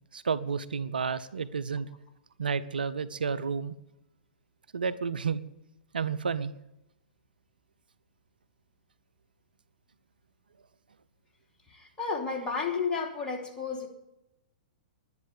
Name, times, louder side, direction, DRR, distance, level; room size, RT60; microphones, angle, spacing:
voice 1, 0.1-1.9 2.4-3.7 4.7-5.4 5.9-6.5, right 5 dB, 80° right, 14 dB, 0.7 m, -31 dB
voice 2, 11.7-13.9, left 5 dB, 20° left, 1 dB, 3.1 m, -32 dB
11.0 x 10.5 x 8.4 m, 0.88 s
hypercardioid pair, 115°, 5 cm